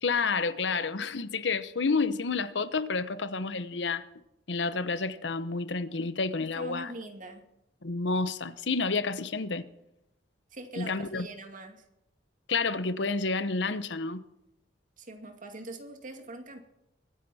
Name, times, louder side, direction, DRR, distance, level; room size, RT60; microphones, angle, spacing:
voice 1, 0.0-4.0 4.5-6.9 7.8-9.7 10.8-11.3 12.5-14.2, left 4 dB, 75° left, 0.9 m, -30 dB
voice 2, 6.4-7.4 10.5-11.9 15.0-16.6, right 1 dB, 45° right, 2.3 m, -43 dB
23.0 x 10.0 x 4.3 m
head